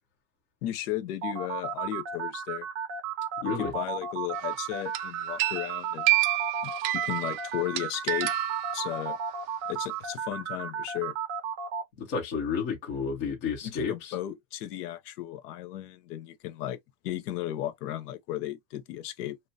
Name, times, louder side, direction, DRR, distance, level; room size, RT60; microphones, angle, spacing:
voice 1, 0.6-2.7 3.4-6.1 6.6-8.3 8.7-9.2 9.7-11.1 13.6-19.4, left 13 dB, 70° left, 0.7 m, -35 dB
sound 1, 1.2-11.8, right 7 dB, 40° right, 0.5 m, -34 dB
voice 2, 3.4-3.7 12.0-14.2, left 5 dB, 20° left, 0.3 m, -31 dB
sound 2, 4.3-4.6 4.9-9.3, right 17 dB, 90° right, 0.6 m, -29 dB
2.8 x 2.2 x 2.6 m
supercardioid pair, 165°, 49 cm